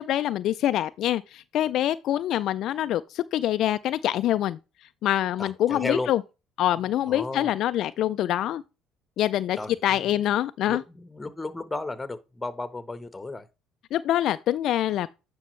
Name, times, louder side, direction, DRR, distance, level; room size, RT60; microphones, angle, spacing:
voice 1, 0.0-4.6 5.0-6.2 6.6-8.6 9.2-9.6 9.8-10.8 13.9-15.1, left 12 dB, 65° left, 0.3 m, -25 dB
voice 2, 5.4-6.1 7.1-7.5 9.6-10.2 10.6-13.5, left 2 dB, 15° left, 1.1 m, -34 dB
10.0 x 5.3 x 3.2 m
supercardioid pair, 75°, 0 cm